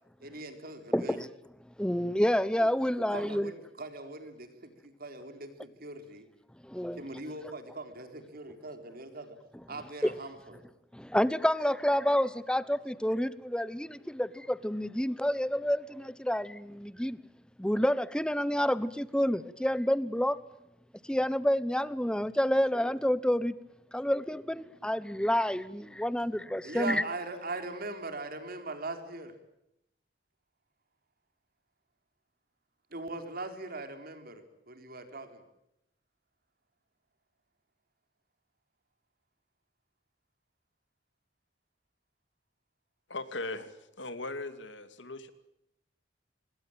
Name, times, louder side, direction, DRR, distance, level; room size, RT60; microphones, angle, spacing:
voice 1, 0.2-1.2 2.6-2.7 3.1-6.3 6.9-9.4 9.7-10.6 26.6-29.3 32.9-35.4, right 2 dB, 55° right, 4.2 m, -40 dB
voice 2, 0.9-1.3 1.8-3.5 6.6-7.0 10.0-10.1 10.9-17.2 17.6-20.4 21.1-23.6 23.9-27.0, equal, 5° left, 1.0 m, -29 dB
voice 3, 43.1-45.3, left 2 dB, 75° left, 2.6 m, -39 dB
26.5 x 21.5 x 9.0 m
head